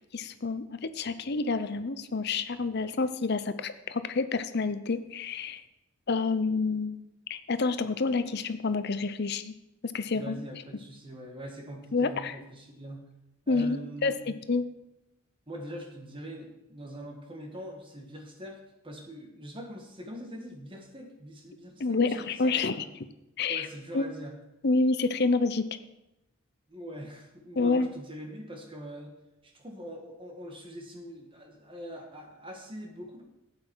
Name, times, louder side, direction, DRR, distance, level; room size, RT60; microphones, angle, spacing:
voice 1, 0.1-5.6 6.1-7.0 7.3-9.5 9.9-10.4 11.9-12.3 13.5-14.6 21.8-22.8 23.4-23.7 23.9-24.0 24.6-25.6 27.6-27.9, left 3 dB, 50° left, 12 dB, 0.6 m, -28 dB
voice 2, 10.1-13.1 13.5-14.3 15.5-18.6 18.8-22.8 23.5-24.4 26.7-29.1 29.4-33.2, equal, 25° right, 2 dB, 1.5 m, -43 dB
11.5 x 8.6 x 4.7 m, 0.92 s
head